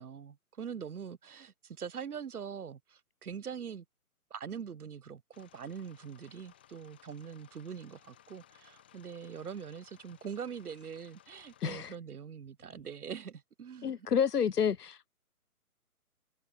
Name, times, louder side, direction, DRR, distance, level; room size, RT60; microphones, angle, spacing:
voice 1, 0.0-3.8 4.3-14.1, right 7 dB, 75° right, 0.7 m, -43 dB
sound 1, 5.3-12.0, left 11 dB, 5° left, 0.7 m, -61 dB
voice 2, 11.6-11.9 13.8-15.1, left 7 dB, 90° left, 0.6 m, -29 dB
figure-of-eight pair, 140°, 45 cm